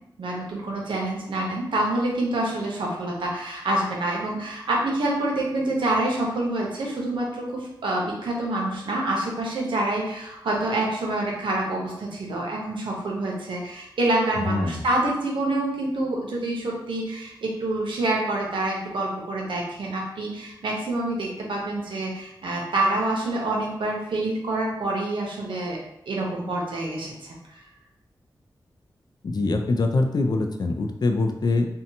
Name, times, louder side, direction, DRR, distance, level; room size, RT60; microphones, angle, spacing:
voice 1, 0.2-25.8 26.1-27.3, right 2 dB, 90° right, -2 dB, 0.6 m, -27 dB
voice 2, 14.4-14.8 29.2-31.7, left 3 dB, 55° left, 4 dB, 0.4 m, -23 dB
2.7 x 2.1 x 2.6 m, 0.83 s
cardioid pair, 60°, 8 cm